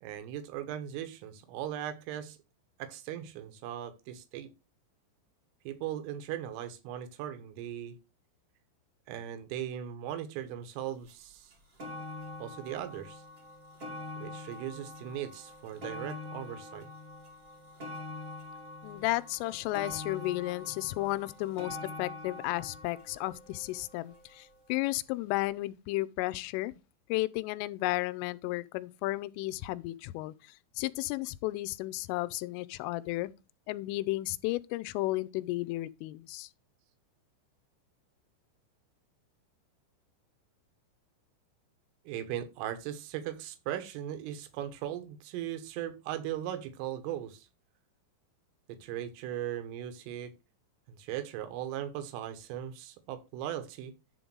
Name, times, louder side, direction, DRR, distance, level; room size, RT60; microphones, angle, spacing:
voice 1, 0.0-2.4 2.8-4.5 5.7-8.0 9.1-11.5 12.4-13.2 14.2-16.9 42.1-47.5 48.7-50.3 50.9-53.9, right 11 dB, 80° right, 3.7 m, -38 dB
sound 1, 11.1-11.2 11.5-24.7 25.5-25.6, left 2 dB, 45° right, 1.1 m, -45 dB
voice 2, 18.8-26.7 27.1-33.3 33.7-36.5, left 19 dB, 85° left, 3.0 m, -33 dB
10.5 x 3.9 x 6.1 m
omnidirectional pair, 5.9 m